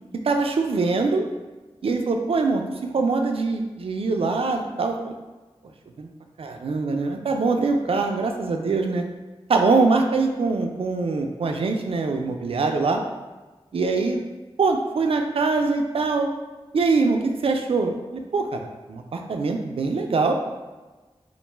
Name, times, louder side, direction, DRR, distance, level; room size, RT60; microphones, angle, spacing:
voice 1, 0.2-1.2 1.8-5.1 6.4-9.0 9.5-13.0 13.7-14.2 14.6-16.3 16.7-18.6 18.9-20.3, right 3 dB, 65° right, 4 dB, 0.3 m, -23 dB
2.5 x 2.2 x 3.0 m, 1.2 s
cardioid pair, 50°, 11 cm